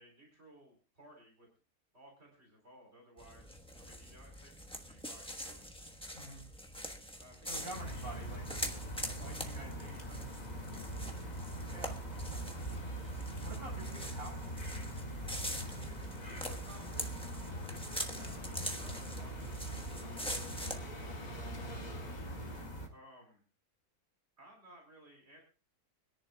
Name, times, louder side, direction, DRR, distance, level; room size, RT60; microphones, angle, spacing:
voice 1, 0.0-1.5 1.9-5.7 7.2-8.3 9.0-9.7 10.1-10.3 16.2-21.8 22.9-23.4 24.4-25.4, right 1 dB, 40° right, 0 dB, 4.3 m, -59 dB
sound 1, 3.2-20.8, equal, 5° left, 1.0 m, -44 dB
voice 2, 6.1-6.5 7.4-8.4 9.2-10.2 11.7-12.0 13.4-14.5, right 1 dB, 60° right, -1 dB, 6.7 m, -47 dB
sound 2, 7.5-22.6, left 2 dB, 75° left, 2.8 m, -52 dB
sound 3, 7.7-22.9, right 1 dB, 30° left, 2.0 m, -42 dB
25.5 x 10.5 x 2.3 m, 0.33 s
omnidirectional pair, 1.6 m